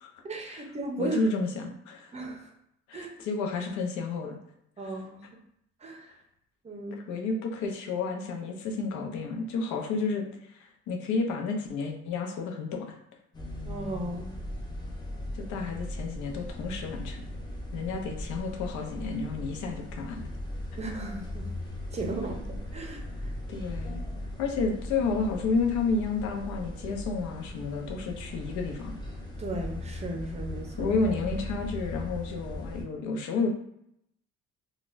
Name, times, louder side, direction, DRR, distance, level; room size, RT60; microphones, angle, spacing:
voice 1, 0.2-1.2 2.1-2.5 2.9-3.1 4.8-5.2 5.8-6.1 6.6-7.0 13.6-14.4 20.7-21.5 21.9-23.3 29.4-30.9, right 2 dB, 25° right, 1 dB, 0.6 m, -36 dB
voice 2, 1.0-2.1 2.9-4.4 6.9-13.0 15.3-17.2 17.7-20.3 23.5-24.0 24.4-29.0 30.8-33.5, left 4 dB, 85° left, 3 dB, 0.7 m, -31 dB
sound 1, 13.3-32.8, left 1 dB, 15° left, 0.7 m, -38 dB
4.0 x 2.3 x 2.5 m, 0.75 s
cardioid pair, 125°, 29 cm